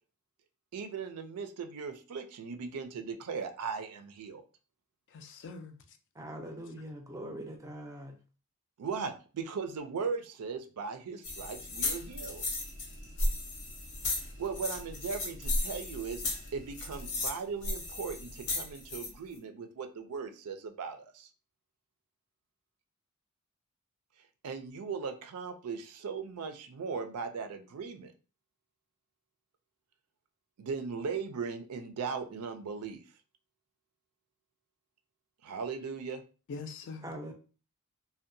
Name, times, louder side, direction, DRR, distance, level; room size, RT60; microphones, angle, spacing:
voice 1, 0.7-4.4 8.8-12.4 14.4-21.3 24.4-28.1 30.6-33.0 35.4-36.2, right 5 dB, 85° right, 0.4 m, -38 dB
voice 2, 5.1-6.0 36.5-37.0, left 4 dB, 55° left, 0.4 m, -43 dB
voice 3, 6.1-8.1 37.0-37.3, right 1 dB, 15° right, 0.4 m, -42 dB
sound 1, 11.2-19.1, left 2 dB, 90° left, 0.9 m, -35 dB
2.7 x 2.1 x 2.5 m
head